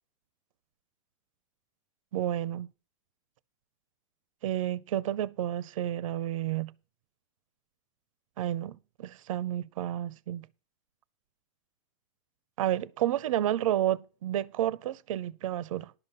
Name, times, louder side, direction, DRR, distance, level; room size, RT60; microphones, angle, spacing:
voice 1, 2.1-2.7 4.4-6.7 8.4-10.5 12.6-15.9, right 12 dB, 75° right, 0.6 m, -30 dB
11.0 x 5.8 x 6.7 m
supercardioid pair, 170°, 17 cm